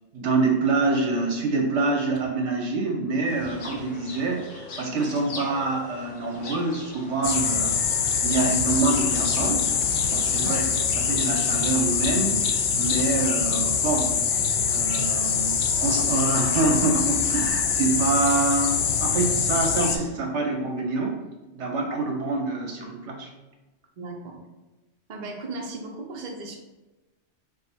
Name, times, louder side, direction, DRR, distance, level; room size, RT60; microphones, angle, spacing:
voice 1, 0.1-7.8 8.2-9.7 10.1-14.2 14.7-15.5 15.8-21.2 21.5-23.3, right 3 dB, 70° right, 0 dB, 1.2 m, -26 dB
sound 1, 3.2-11.8, left 3 dB, 85° left, 1.2 m, -41 dB
sound 2, 7.2-20.0, left 6 dB, 65° left, 0.8 m, -24 dB
voice 2, 24.0-24.4 25.1-26.5, right 3 dB, 45° right, 0 dB, 0.7 m, -36 dB
5.2 x 2.1 x 4.3 m, 1.1 s
omnidirectional pair, 1.2 m